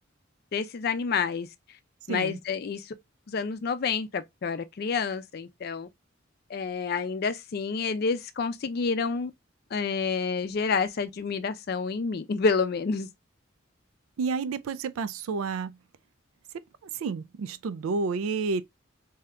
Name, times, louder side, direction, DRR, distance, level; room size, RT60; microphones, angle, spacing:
voice 1, 0.5-1.5 2.1-2.8 3.3-5.9 6.5-9.3 9.7-13.1, left 5 dB, 50° left, 0.4 m, -28 dB
voice 2, 2.1-2.4 14.2-15.8 16.9-18.6, right 4 dB, 90° right, 0.4 m, -30 dB
2.7 x 2.4 x 3.2 m
head